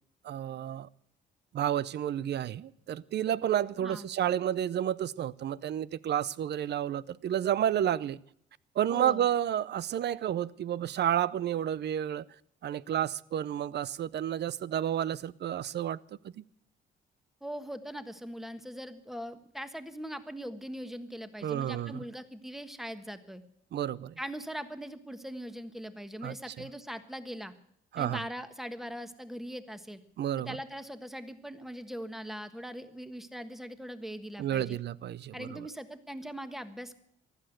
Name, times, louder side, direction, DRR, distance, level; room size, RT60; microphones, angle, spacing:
voice 1, 0.2-0.9 1.5-8.2 8.8-12.2 12.6-16.0 16.2-16.4 21.4-22.0 23.7-24.2 26.2-26.3 27.9-28.2 30.2-30.6 34.4-35.6, right 10 dB, 60° right, 0.6 m, -31 dB
voice 2, 8.9-9.3 17.4-23.4 24.2-27.5 28.0-30.0 30.5-34.8 35.3-37.0, equal, ahead, 1.4 m, -41 dB
15.0 x 11.5 x 7.8 m
cardioid pair, 90°, 20 cm